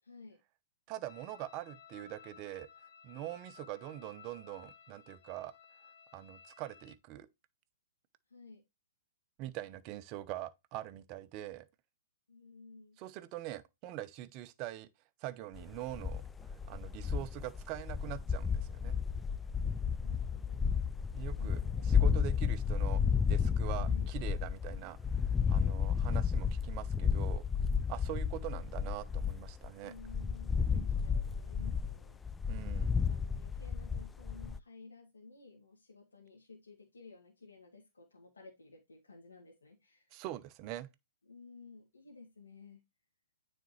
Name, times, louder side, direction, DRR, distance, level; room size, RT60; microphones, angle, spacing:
voice 1, 0.0-0.4 8.3-8.6 12.3-13.0 20.0-20.9 21.4-22.4 23.8-24.2 29.8-32.2 32.7-40.1 41.3-42.8, left 3 dB, 85° left, 2.1 m, -55 dB
voice 2, 0.9-2.7 3.0-5.5 6.1-7.3 9.4-11.7 13.0-14.9 15.2-16.2 16.7-19.0 21.1-23.0 23.3-25.0 25.5-27.5 27.9-29.9 32.5-33.0 40.1-40.9, right 14 dB, 35° right, 0.8 m, -43 dB
sound 1, 1.1-7.0, left 7 dB, 55° left, 0.8 m, -57 dB
sound 2, 15.5-29.7 30.0-34.6, left 6 dB, 10° left, 0.3 m, -32 dB
9.2 x 4.3 x 3.1 m
hypercardioid pair, 125°, 0 cm